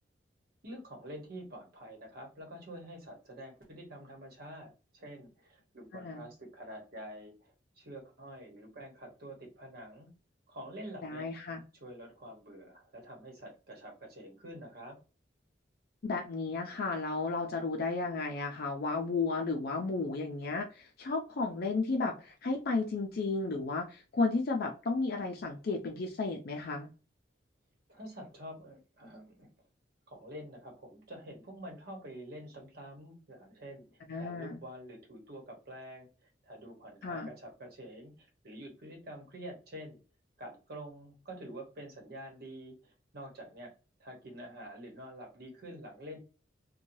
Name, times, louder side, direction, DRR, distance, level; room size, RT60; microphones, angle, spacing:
voice 1, 0.6-10.1 10.5-11.3 11.7-15.0 27.9-29.5 30.1-36.1 36.4-40.0 40.4-43.7 44.0-46.2, equal, 55° right, 1 dB, 1.1 m, -47 dB
voice 2, 5.9-6.3 11.0-11.6 16.0-26.9 34.1-34.6 37.0-37.3, left 3 dB, 55° left, 2 dB, 0.4 m, -33 dB
3.0 x 2.2 x 2.6 m, 0.33 s
head